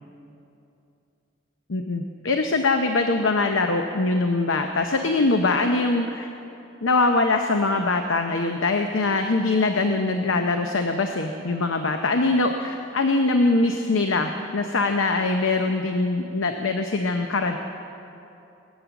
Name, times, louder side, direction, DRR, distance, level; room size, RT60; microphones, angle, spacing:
voice 1, 1.7-6.3 6.8-17.6, left 3 dB, 85° left, 5 dB, 0.7 m, -23 dB
18.5 x 8.8 x 7.0 m, 2.8 s
head